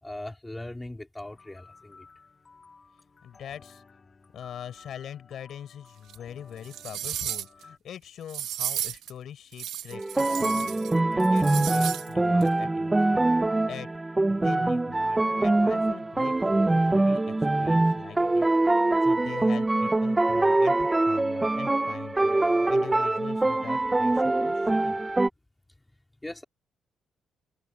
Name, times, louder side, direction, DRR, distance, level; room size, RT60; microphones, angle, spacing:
voice 1, 0.0-2.1 26.2-26.4, left 1 dB, 10° left, 3.6 m, -39 dB
sound 1, 1.2-7.8, left 4 dB, 25° left, 3.7 m, -55 dB
voice 2, 3.2-3.8 4.3-13.3 13.7-13.9 14.3-18.5 18.7-22.4 22.7-25.0, left 9 dB, 60° left, 6.4 m, -43 dB
sound 2, 6.1-6.2 6.6-7.6 8.3-9.1 9.5-10.9 11.2-12.1 12.4-12.5, right 11 dB, 90° right, 1.8 m, -33 dB
sound 3, 9.9-25.3, right 2 dB, 10° right, 0.7 m, -24 dB
cardioid pair, 155°, 0 cm